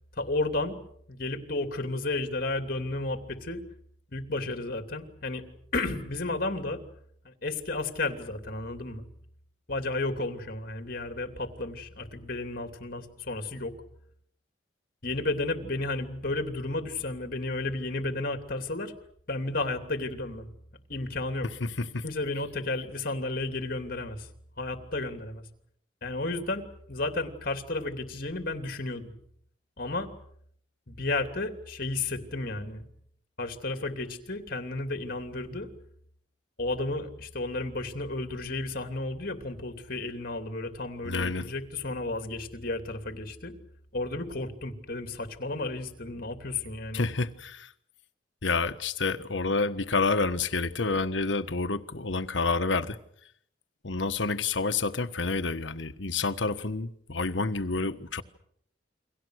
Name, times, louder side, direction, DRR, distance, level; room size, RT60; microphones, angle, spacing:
voice 1, 0.2-0.8 1.1-3.6 4.1-5.4 5.7-6.8 7.2-9.0 9.7-13.7 15.0-18.9 19.3-20.5 20.9-21.5 22.0-24.3 24.6-25.4 26.0-29.1 29.8-30.1 30.9-32.8 33.4-35.7 36.6-43.5 43.9-47.1, left 2 dB, 50° left, 3.0 m, -32 dB
voice 2, 21.6-22.0 41.0-41.5 46.9-47.7 48.4-53.0 53.8-58.2, left 3 dB, 80° left, 1.4 m, -29 dB
29.5 x 23.5 x 6.5 m
head